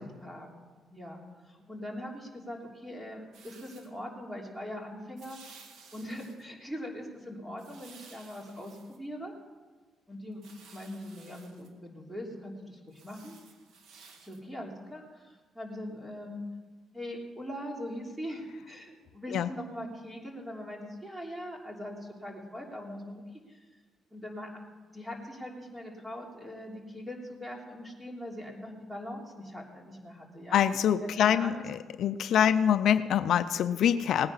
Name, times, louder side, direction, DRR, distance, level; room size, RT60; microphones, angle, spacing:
voice 1, 0.0-5.4 5.9-9.3 10.1-13.4 14.2-16.4 16.9-23.6 24.1-24.5 24.9-30.6 31.0-31.6 34.2-34.3, equal, 10° right, 0 dB, 3.1 m, -41 dB
sound 1, 3.3-3.9 5.2-6.4 7.6-9.0 10.3-11.7 12.9-14.4, right 5 dB, 80° right, 1.9 m, -55 dB
voice 2, 30.5-34.3, left 9 dB, 70° left, 12 dB, 0.5 m, -25 dB
18.5 x 9.7 x 5.6 m, 1.4 s
cardioid pair, 90°, 0 cm